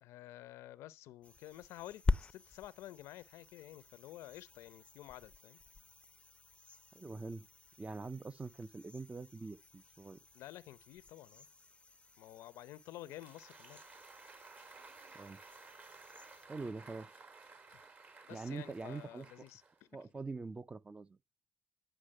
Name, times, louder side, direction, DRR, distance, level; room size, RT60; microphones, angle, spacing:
voice 1, 0.0-5.6 10.3-11.5 12.2-13.8 18.3-20.1, left 14 dB, 80° left, 0.6 m, -51 dB
sound 1, 1.2-16.5, left 3 dB, 25° left, 0.6 m, -45 dB
voice 2, 6.9-7.5 7.8-10.2 15.1-15.4 16.5-17.1 18.3-19.5 19.9-21.2, right 3 dB, 25° right, 0.6 m, -44 dB
Applause, 12.9-20.0, right 4 dB, 40° right, 2.1 m, -56 dB
10.0 x 6.3 x 6.4 m
supercardioid pair, 70°, 5 cm